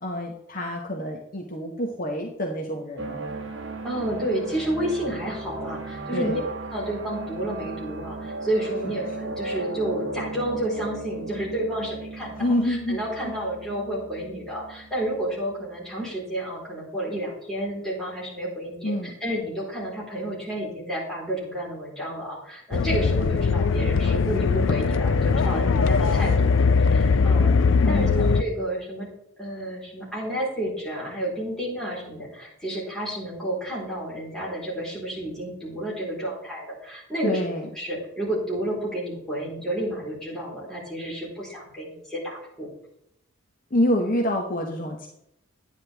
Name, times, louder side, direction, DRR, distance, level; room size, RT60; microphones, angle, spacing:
voice 1, 0.0-3.2 6.1-6.4 12.4-13.0 13.2-13.3 18.8-19.1 27.8-28.3 37.2-37.7 43.7-45.1, left 1 dB, 40° left, 2 dB, 1.0 m, -27 dB
sound 1, 3.0-16.0, right 3 dB, 55° right, 1.3 m, -36 dB
voice 2, 3.8-6.4 6.7-27.6 27.9-29.1 29.4-37.4 37.7-42.7, right 1 dB, ahead, -7 dB, 4.0 m, -31 dB
sound 2, 22.7-28.4, left 4 dB, 60° left, 0.4 m, -20 dB
9.9 x 9.5 x 3.5 m, 0.78 s
head